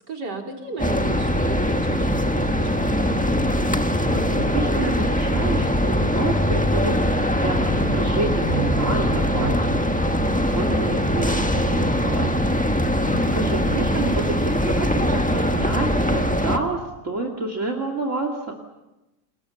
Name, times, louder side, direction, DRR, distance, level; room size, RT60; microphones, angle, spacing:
voice 1, 0.1-3.4, right 2 dB, 75° right, 2 dB, 4.3 m, -35 dB
sound 1, 0.8-16.6, equal, 5° left, 1.3 m, -22 dB
voice 2, 4.1-7.0 7.4-10.1 10.4-12.6 13.0-18.5, right 3 dB, 45° right, 4 dB, 2.8 m, -29 dB
28.5 x 21.5 x 7.1 m, 1.0 s
omnidirectional pair, 1.8 m